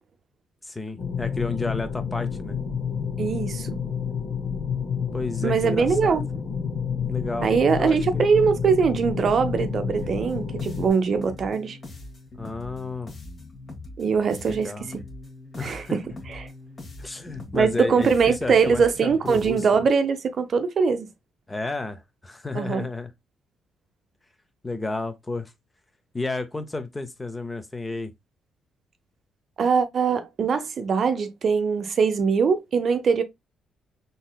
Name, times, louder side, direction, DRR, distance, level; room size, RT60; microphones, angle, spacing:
voice 1, 0.6-2.6 5.1-6.2 7.1-8.2 12.4-13.1 14.5-14.9 15.6-16.0 17.0-19.9 21.5-23.1 24.6-25.5 26.1-28.1, left 3 dB, 20° left, 0.6 m, -32 dB
sound 1, 1.0-10.9, left 6 dB, 65° left, 1.0 m, -29 dB
voice 2, 3.2-3.8 5.4-6.2 7.4-11.8 14.0-14.7 15.6-16.0 16.3-16.5 17.5-21.1 22.5-22.9 29.6-33.2, right 5 dB, 50° right, 0.6 m, -22 dB
sound 2, 10.0-19.9, left 2 dB, 40° left, 1.4 m, -42 dB
3.9 x 2.7 x 2.2 m
cardioid pair, 90°, 0 cm